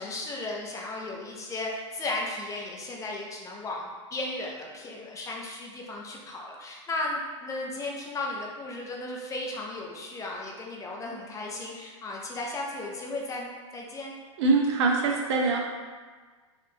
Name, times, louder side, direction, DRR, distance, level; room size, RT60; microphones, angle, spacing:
voice 1, 0.0-14.1, left 2 dB, 20° left, -1 dB, 0.4 m, -35 dB
voice 2, 14.4-15.6, right 3 dB, 60° right, 0 dB, 0.6 m, -23 dB
3.6 x 2.4 x 2.7 m, 1.4 s
hypercardioid pair, 115°, 16 cm